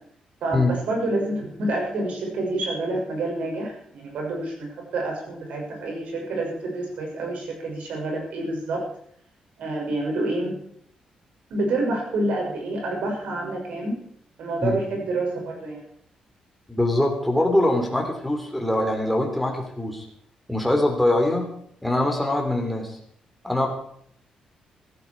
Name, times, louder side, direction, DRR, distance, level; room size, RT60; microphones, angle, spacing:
voice 1, 0.4-8.8 9.6-10.6 11.5-14.0 14.4-15.8, right 2 dB, 80° right, 0 dB, 6.5 m, -28 dB
voice 2, 16.7-20.0 20.5-21.5 21.8-23.0 23.4-23.7, left 1 dB, ahead, 2 dB, 3.3 m, -23 dB
16.5 x 14.0 x 4.8 m, 0.67 s
cardioid pair, 150°, 2 cm